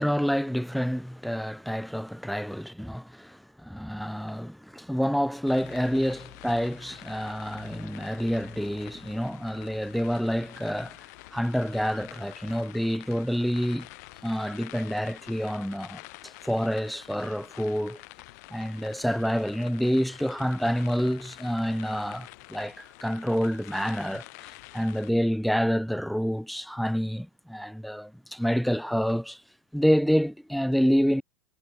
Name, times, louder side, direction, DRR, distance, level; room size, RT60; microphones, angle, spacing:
voice 1, 0.0-11.0 11.3-13.9 14.2-18.0 18.5-24.2 24.7-29.4 29.7-31.2, equal, ahead, 3.6 m, -28 dB
sound 1, 5.5-25.1, left 24 dB, 55° left, 5.7 m, -47 dB
hypercardioid pair, 95°, 10 cm